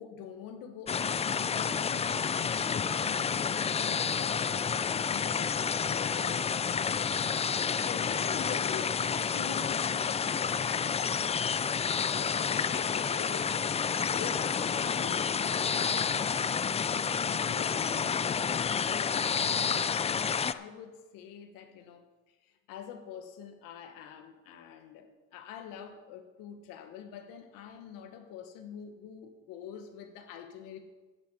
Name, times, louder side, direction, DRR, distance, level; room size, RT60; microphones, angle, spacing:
voice 1, 0.0-11.0 11.8-13.7 14.0-16.7 17.2-18.4 18.9-30.8, left 8 dB, 90° left, 6 dB, 1.5 m, -45 dB
sound 1, 0.9-20.5, left 6 dB, 20° left, 0.3 m, -30 dB
10.5 x 6.0 x 8.4 m, 1.2 s
cardioid pair, 95°, 33 cm